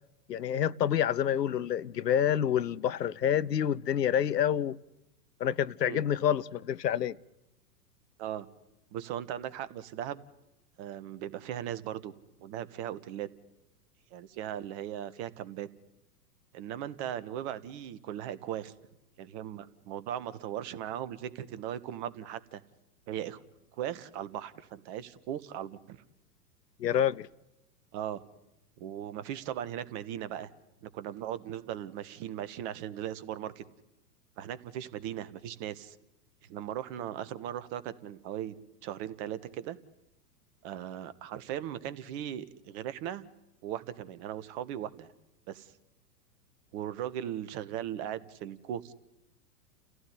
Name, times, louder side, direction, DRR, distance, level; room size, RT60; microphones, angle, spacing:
voice 1, 0.3-4.8 5.4-7.2 26.8-27.3, left 9 dB, 75° left, 0.8 m, -28 dB
voice 2, 8.9-10.2 10.8-12.1 12.4-13.3 14.1-15.7 16.5-18.7 19.2-22.6 23.1-23.4 23.8-26.0 27.9-28.2 28.8-30.5 30.8-33.6 34.4-36.0 36.5-38.5 38.8-39.8 40.6-43.2 43.6-45.1 45.5-45.7 46.7-48.9, right 11 dB, 40° right, 1.5 m, -38 dB
29.5 x 16.0 x 9.7 m
figure-of-eight pair, 100°, 49 cm